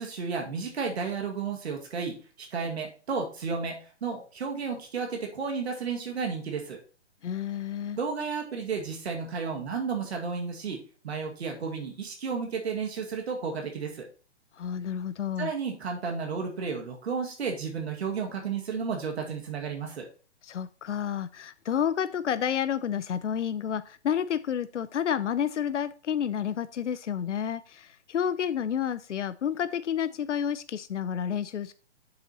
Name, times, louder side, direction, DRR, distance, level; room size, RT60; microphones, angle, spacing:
voice 1, 0.0-6.8 7.9-14.1 15.4-20.1, right 5 dB, 65° right, 2 dB, 2.1 m, -32 dB
voice 2, 7.2-8.0 14.5-15.5 20.4-31.7, left 8 dB, 85° left, 14 dB, 0.7 m, -30 dB
7.9 x 6.9 x 2.9 m, 0.38 s
hypercardioid pair, 150°, 35 cm